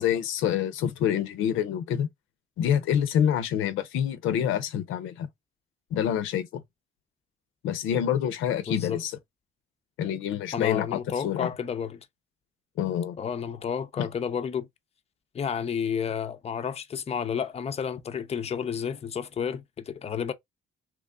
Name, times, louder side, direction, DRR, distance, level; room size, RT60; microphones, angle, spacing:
voice 1, 0.0-2.1 2.6-5.3 5.9-6.6 7.6-9.2 10.0-11.5 12.8-13.2 14.0-14.1, left 9 dB, 90° left, 0.6 m, -27 dB
voice 2, 8.7-9.0 10.5-12.1 13.2-14.7 15.3-20.3, left 7 dB, 30° left, 0.5 m, -31 dB
3.0 x 2.3 x 3.6 m
cardioid pair, 90°, 20 cm